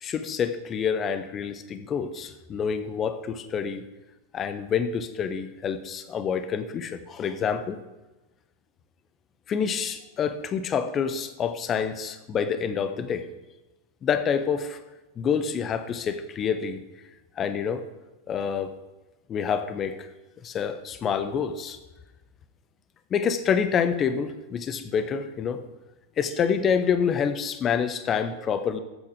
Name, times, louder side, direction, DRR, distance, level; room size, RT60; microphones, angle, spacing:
voice 1, 0.0-3.8 4.3-7.8 9.5-13.3 14.0-14.8 15.2-16.8 17.4-17.8 18.3-18.7 19.3-20.1 20.4-21.8 23.1-25.6 26.2-28.8, left 7 dB, 25° left, 11 dB, 1.1 m, -27 dB
15.0 x 8.6 x 5.0 m, 1.1 s
figure-of-eight pair, 90°, 0 cm